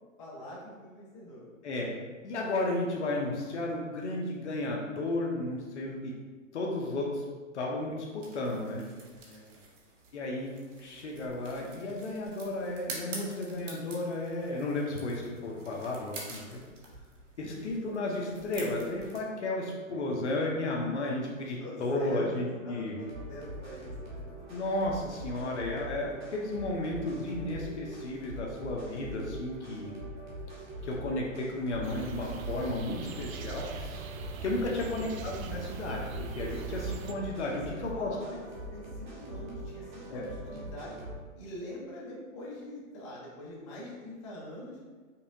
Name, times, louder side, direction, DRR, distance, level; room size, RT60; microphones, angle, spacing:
voice 1, 0.2-1.5 9.3-9.7 17.4-17.5 21.4-24.3 34.4-34.8 37.5-41.0 41.3-44.8, left 1 dB, 20° left, -7 dB, 0.8 m, -44 dB
voice 2, 1.6-2.0 2.2-6.1 6.5-7.2 7.5-8.8 10.1-10.5 10.8-16.6 17.4-23.0 24.5-29.9 30.8-34.0 34.4-38.2 40.1-40.2, left 2 dB, 55° left, -1 dB, 0.7 m, -33 dB
sound 1, 8.2-19.2, right 3 dB, 65° right, 1.1 m, -48 dB
sound 2, 23.0-41.2, right 1 dB, 35° right, 1.0 m, -43 dB
sound 3, 31.8-37.1, right 5 dB, 85° right, 0.5 m, -40 dB
5.5 x 2.3 x 2.6 m, 1.4 s
hypercardioid pair, 165°, 40 cm